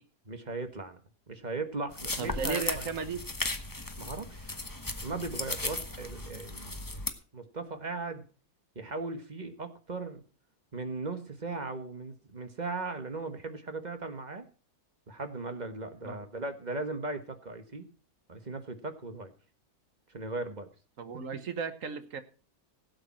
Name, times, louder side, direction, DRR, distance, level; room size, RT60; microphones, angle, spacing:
voice 1, 0.2-1.0 1.3-2.9 4.0-4.5 5.0-6.9 7.3-8.2 8.7-10.2 10.7-14.5 15.1-17.9 18.3-19.3 20.1-20.7 21.1-21.2, right 3 dB, 30° right, 8 dB, 1.6 m, -38 dB
sound 1, 1.9-7.1, left 2 dB, 15° left, 1.1 m, -36 dB
voice 2, 2.2-3.2 16.0-16.2 21.0-22.2, right 5 dB, 60° right, 11 dB, 1.5 m, -35 dB
16.5 x 8.8 x 4.3 m, 0.37 s
omnidirectional pair, 1.6 m